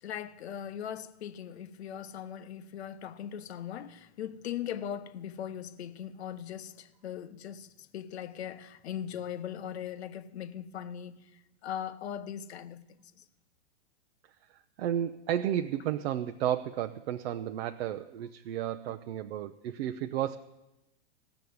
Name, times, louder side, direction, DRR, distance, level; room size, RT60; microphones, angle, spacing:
voice 1, 0.0-12.9 13.2-13.3, left 9 dB, 75° left, 0.9 m, -40 dB
voice 2, 14.5-20.4, right 11 dB, 65° right, 0.7 m, -32 dB
16.0 x 7.0 x 9.4 m
hypercardioid pair, 120°, 33 cm